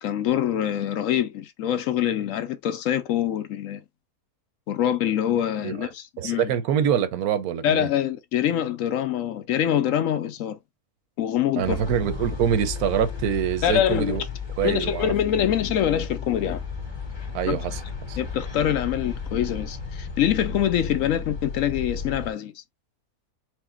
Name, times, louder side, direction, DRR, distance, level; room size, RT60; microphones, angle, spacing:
voice 1, 0.0-3.8 4.7-6.5 7.6-10.6 11.2-11.8 13.6-14.2 14.6-16.6 17.5-17.6 18.2-22.6, left 10 dB, 70° left, 0.9 m, -25 dB
voice 2, 6.2-7.9 11.6-14.2 14.6-15.4 17.3-17.8 18.1-18.2, right 9 dB, 80° right, 1.2 m, -25 dB
sound 1, 11.6-22.3, left 5 dB, 20° left, 1.0 m, -34 dB
4.7 x 2.1 x 4.3 m
omnidirectional pair, 1.6 m